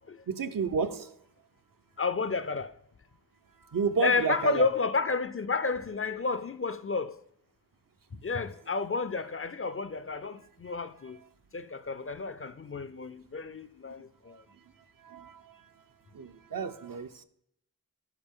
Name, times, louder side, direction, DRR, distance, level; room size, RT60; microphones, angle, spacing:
voice 1, 0.3-1.1 3.7-4.7 8.1-8.2 15.0-15.7 16.1-17.2, right 5 dB, 60° right, 0.6 m, -32 dB
voice 2, 2.0-2.7 4.0-7.2 8.2-11.2 11.5-14.4, left 4 dB, 40° left, 0.4 m, -31 dB
13.0 x 4.8 x 3.6 m
wide cardioid pair, 65°, 37 cm